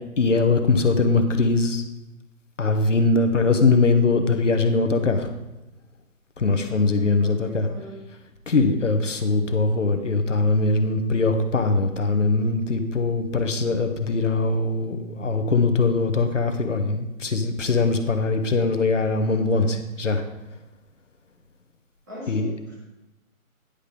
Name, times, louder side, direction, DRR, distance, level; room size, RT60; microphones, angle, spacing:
voice 1, 0.2-1.8 2.6-5.3 6.4-7.7 8.5-20.2 22.3-22.4, left 3 dB, 60° left, 7 dB, 1.1 m, -21 dB
voice 2, 6.4-8.0 22.1-22.8, equal, 10° right, -10 dB, 2.3 m, -41 dB
10.0 x 5.2 x 5.1 m, 0.98 s
hypercardioid pair, 180°, 43 cm